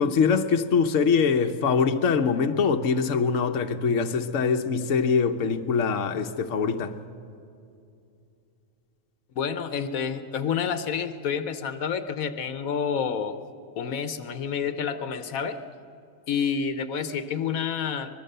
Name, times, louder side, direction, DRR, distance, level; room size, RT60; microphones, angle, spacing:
voice 1, 0.0-6.9, left 5 dB, 65° left, 1.2 m, -23 dB
voice 2, 9.3-13.4 13.7-15.6 16.3-18.1, left 7 dB, 85° left, 1.3 m, -29 dB
24.0 x 21.0 x 6.7 m
omnidirectional pair, 1.4 m